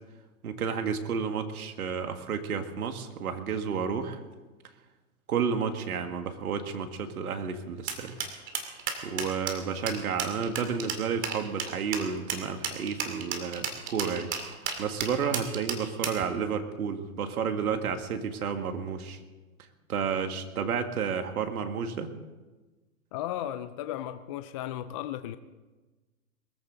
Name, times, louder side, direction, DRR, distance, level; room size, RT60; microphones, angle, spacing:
voice 1, 0.4-4.2 5.3-8.1 9.0-14.3 14.8-19.2 19.9-22.1, right 6 dB, 75° right, 2.0 m, -31 dB
sound 1, 7.9-16.2, right 7 dB, 25° right, 2.3 m, -33 dB
voice 2, 23.1-25.4, left 12 dB, 25° left, 0.4 m, -35 dB
22.0 x 14.5 x 4.0 m
hypercardioid pair, 125°, 44 cm